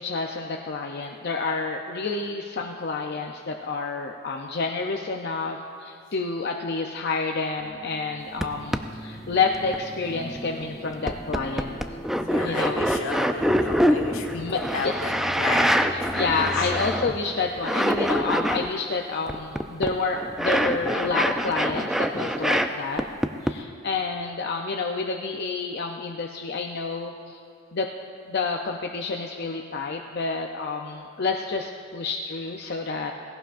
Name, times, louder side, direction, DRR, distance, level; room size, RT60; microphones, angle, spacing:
voice 1, 0.0-11.8 12.4-12.8 14.3-14.9 15.9-23.0 23.4-27.4 27.7-27.9 28.3-33.1, left 4 dB, 50° left, 2 dB, 0.5 m, -29 dB
sound 1, 7.6-17.5, equal, 15° left, 0.8 m, -41 dB
sound 2, 8.4-8.5 8.7-8.8 9.3-9.8 10.4-10.5 11.1-17.3 17.6-18.7 19.3-22.7 23.0-23.5, equal, ahead, 0.3 m, -24 dB
voice 2, 12.3-16.7, left 3 dB, 75° left, 3 dB, 1.3 m, -34 dB
17.5 x 16.5 x 2.5 m, 2.4 s
head